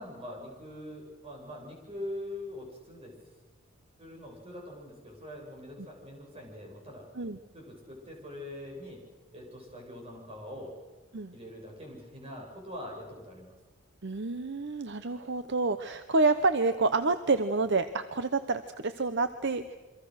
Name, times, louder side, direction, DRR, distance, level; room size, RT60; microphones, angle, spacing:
voice 1, 0.0-3.1 4.0-7.0 7.5-9.0 9.3-10.7 11.3-13.6, left 1 dB, 25° right, 0 dB, 6.9 m, -43 dB
voice 2, 14.0-19.8, right 3 dB, 55° right, 10 dB, 0.9 m, -28 dB
28.5 x 24.5 x 6.5 m, 1.3 s
head